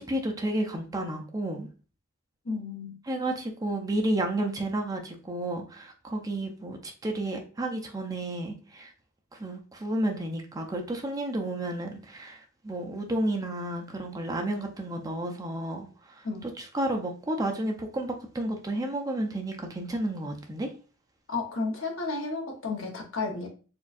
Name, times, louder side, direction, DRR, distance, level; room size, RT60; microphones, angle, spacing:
voice 1, 0.0-1.7 3.1-8.9 9.4-15.9 16.4-20.7, right 1 dB, 20° right, 2 dB, 0.5 m, -31 dB
voice 2, 2.4-3.0 16.2-16.4 21.3-23.5, left 3 dB, 65° left, 0 dB, 1.0 m, -32 dB
4.4 x 2.4 x 2.5 m, 0.37 s
head